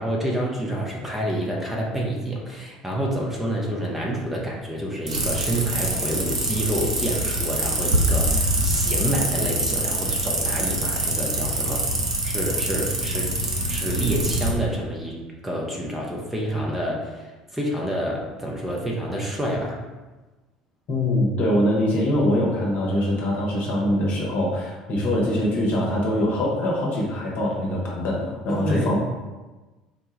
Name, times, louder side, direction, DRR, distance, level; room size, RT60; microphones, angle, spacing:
voice 1, 0.0-11.9 12.2-19.8 28.5-29.0, right 1 dB, 5° right, -2 dB, 0.6 m, -28 dB
sound 1, 5.1-14.5, right 1 dB, 80° right, 0.5 m, -24 dB
voice 2, 20.9-29.0, left 1 dB, 50° left, -3 dB, 0.9 m, -23 dB
3.9 x 2.2 x 3.2 m, 1.2 s
figure-of-eight pair, 60°, 3 cm